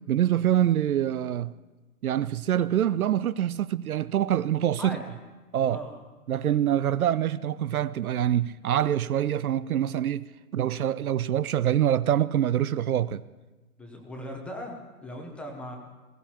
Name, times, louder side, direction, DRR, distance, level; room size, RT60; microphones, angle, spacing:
voice 1, 0.1-1.5 2.0-5.0 5.5-5.8 6.3-10.2 10.5-13.2, right 11 dB, 65° right, 0.6 m, -25 dB
voice 2, 4.8-5.2 5.7-6.0 13.8-15.8, equal, ahead, 0.8 m, -39 dB
20.5 x 17.0 x 2.9 m
hypercardioid pair, 145°, 46 cm